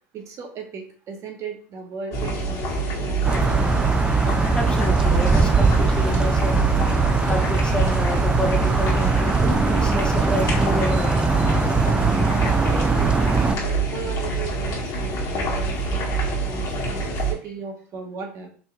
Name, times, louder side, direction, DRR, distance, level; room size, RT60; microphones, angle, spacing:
voice 1, 0.1-3.6 12.6-18.5, right 5 dB, 50° right, 2 dB, 1.3 m, -37 dB
sound 1, 2.1-17.3, right 3 dB, 55° left, 1.6 m, -26 dB
sound 2, 3.2-13.6, right 4 dB, 15° right, 0.4 m, -21 dB
voice 2, 4.5-6.7 7.3-11.2 17.1-17.2, left 1 dB, 15° left, 1 dB, 1.1 m, -29 dB
4.4 x 2.9 x 3.3 m, 0.42 s
supercardioid pair, 95°, 7 cm